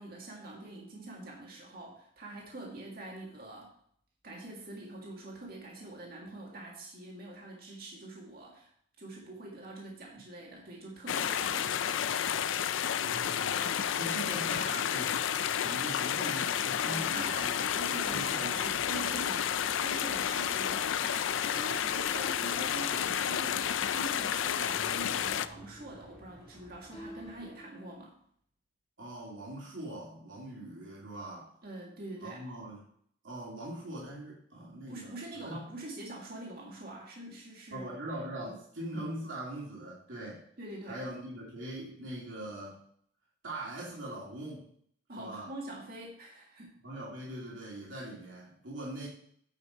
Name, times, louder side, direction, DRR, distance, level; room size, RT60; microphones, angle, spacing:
voice 1, 0.0-3.7 4.2-8.7 9.0-11.7 16.8-19.5 19.8-21.0 21.5-28.1 31.6-32.5 34.9-37.9 38.4-38.6 40.6-41.0 45.1-46.8, right 2 dB, 50° right, -2 dB, 1.9 m, -45 dB
sound 1, 11.1-25.5, left 9 dB, 70° left, 0.4 m, -31 dB
voice 2, 13.0-15.2 15.5-17.6 18.1-18.8 29.0-31.5 32.2-32.8 33.2-35.1 35.4-35.7 37.7-40.4 40.9-42.8 43.4-44.6 45.2-45.5 46.8-49.1, right 1 dB, 70° right, -5 dB, 2.9 m, -41 dB
sound 2, 17.0-27.5, equal, ahead, 1.8 m, -57 dB
sound 3, 18.1-28.0, equal, 30° left, 1.4 m, -53 dB
9.6 x 5.8 x 4.3 m, 0.64 s
head